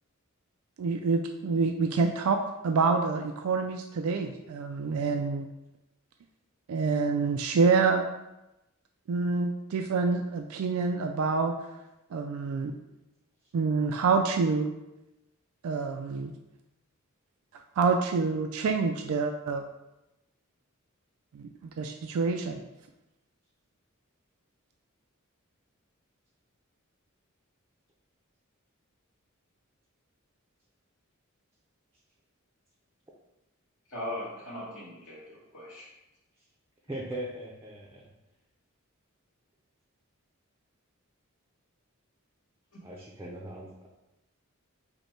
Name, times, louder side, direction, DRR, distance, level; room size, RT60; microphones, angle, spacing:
voice 1, 0.8-2.4 2.6-5.5 6.7-8.0 9.1-11.5 12.1-12.7 13.5-14.7 15.6-16.3 17.8-19.6 21.3-22.6, right 4 dB, 90° right, 5 dB, 0.3 m, -27 dB
voice 2, 33.9-35.9 42.7-42.8, left 1 dB, 65° left, -8 dB, 1.3 m, -39 dB
voice 3, 36.9-38.1 42.8-43.9, right 1 dB, 15° right, -3 dB, 0.5 m, -39 dB
5.4 x 2.2 x 4.3 m, 0.96 s
head